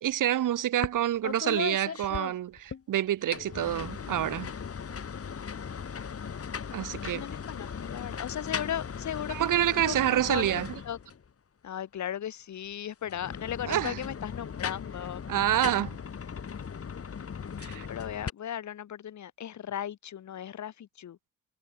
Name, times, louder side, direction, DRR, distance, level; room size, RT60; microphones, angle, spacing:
voice 1, 0.0-4.5 6.7-7.2 9.3-10.7 13.7-14.0 15.3-16.0 17.6-17.9, right 12 dB, 80° right, 1.3 m, -27 dB
sound 1, 0.8-1.0 1.2-2.8 3.2-11.3 13.0-18.3, left 6 dB, 45° left, 4.7 m, -38 dB
voice 2, 7.1-9.4 9.9-10.0 10.3-11.0 11.6-15.2 17.9-21.2, left 10 dB, 65° left, 1.3 m, -36 dB
cardioid pair, 125°, 31 cm